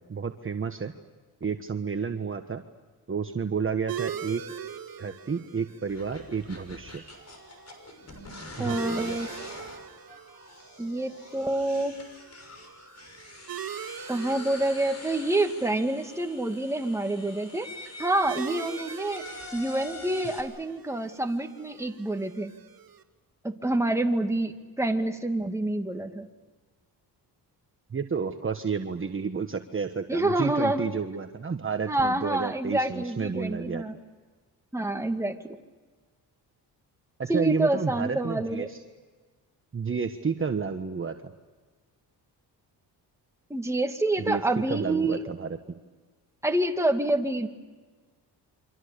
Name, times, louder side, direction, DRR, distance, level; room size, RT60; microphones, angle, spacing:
voice 1, 0.1-0.9 1.4-2.6 3.1-4.4 5.0-7.0 8.6-9.2 27.9-33.8 37.2-38.8 39.7-41.3 44.2-44.4 44.7-45.5, right 5 dB, 30° right, 6 dB, 1.4 m, -31 dB
sound 1, 3.9-23.0, right 9 dB, 55° right, 2.3 m, -42 dB
sound 2, 5.9-20.4, left 2 dB, 40° left, 6.3 m, -45 dB
voice 2, 8.6-9.3 10.8-12.0 14.1-19.2 19.5-22.5 23.4-26.3 30.1-30.9 31.9-33.9 34.7-35.6 37.3-38.7 43.5-45.2 46.4-47.5, right 1 dB, 5° right, 4 dB, 2.3 m, -27 dB
29.0 x 25.0 x 6.9 m, 1.4 s
cardioid pair, 85°, 40 cm